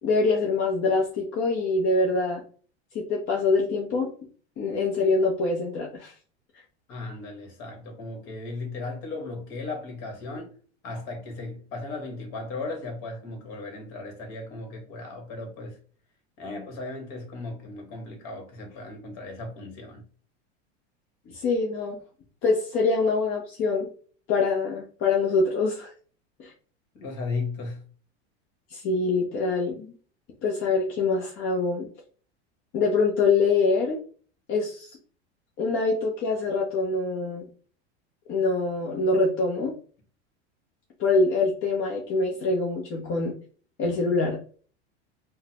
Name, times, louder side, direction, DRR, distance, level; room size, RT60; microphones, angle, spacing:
voice 1, 0.0-2.4 2.9-4.1 4.6-6.1 21.3-22.0 22.4-23.9 24.3-25.9 26.4-26.5 28.7-29.9 30.4-31.9 32.7-34.0 34.5-34.9 35.6-37.4 38.3-39.7 41.0-43.3 43.8-44.4, left 3 dB, 40° left, 0.8 m, -24 dB
voice 2, 6.9-10.5 10.8-15.8 16.4-20.0 26.9-27.8, left 3 dB, 55° left, 1.5 m, -36 dB
3.7 x 2.2 x 2.9 m
hypercardioid pair, 105°, 34 cm